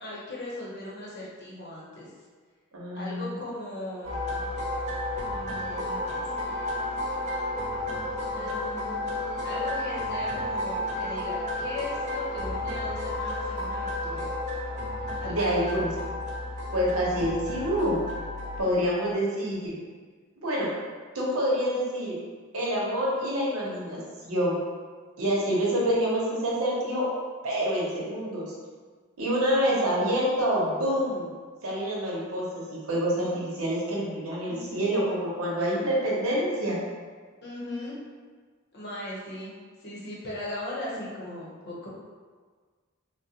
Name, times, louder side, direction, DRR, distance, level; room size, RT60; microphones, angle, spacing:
voice 1, 0.0-2.1 2.9-4.5 5.3-6.9 8.3-14.3 15.2-15.7 34.5-34.9 37.4-38.0 38.7-39.5 39.8-41.9, left 1 dB, 50° left, -5 dB, 0.8 m, -38 dB
voice 2, 2.7-3.3 15.2-15.9 16.7-18.0 18.6-19.7 20.4-20.7 21.1-22.1 22.5-24.0 24.2-24.6 25.2-27.1 27.4-28.5 29.2-31.3 31.6-36.8, equal, 85° right, -5 dB, 0.9 m, -27 dB
sound 1, 4.0-18.6, left 1 dB, 30° right, 0.5 m, -32 dB
3.7 x 2.1 x 2.8 m, 1.5 s
head